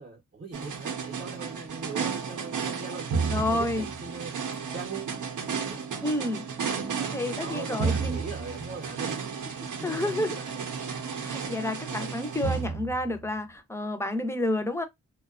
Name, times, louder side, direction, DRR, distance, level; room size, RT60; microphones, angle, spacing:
voice 1, 0.0-4.3 4.7-5.2 5.7-5.8 6.4-9.4 9.8-10.7, right 4 dB, 35° right, 0.6 m, -41 dB
sound 1, 0.5-13.3, right 5 dB, 85° right, 0.6 m, -33 dB
voice 2, 3.3-3.9 6.0-6.4 7.1-8.3 9.8-10.4 11.2-14.9, left 1 dB, 10° left, 0.4 m, -30 dB
2.7 x 2.2 x 2.2 m
wide cardioid pair, 115°, 30 cm